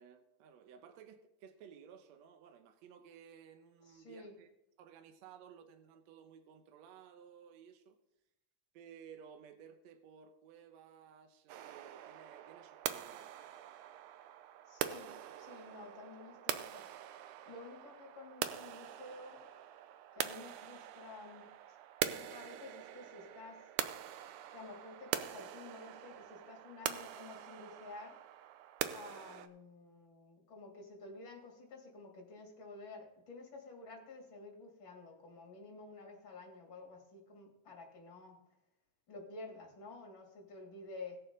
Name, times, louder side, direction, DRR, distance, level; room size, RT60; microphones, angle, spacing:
voice 1, 0.0-4.5 4.8-8.0 8.7-13.4, right 7 dB, 75° right, 6 dB, 2.0 m, -57 dB
voice 2, 3.9-4.4 14.7-16.9 17.4-19.4 20.1-21.5 22.0-23.7 24.5-28.2 28.9-38.4 39.1-41.2, left 3 dB, 40° left, 0 dB, 3.3 m, -51 dB
sound 1, 11.5-29.5, right 11 dB, 90° right, 2.1 m, -43 dB
18.5 x 6.9 x 3.8 m, 0.88 s
omnidirectional pair, 3.4 m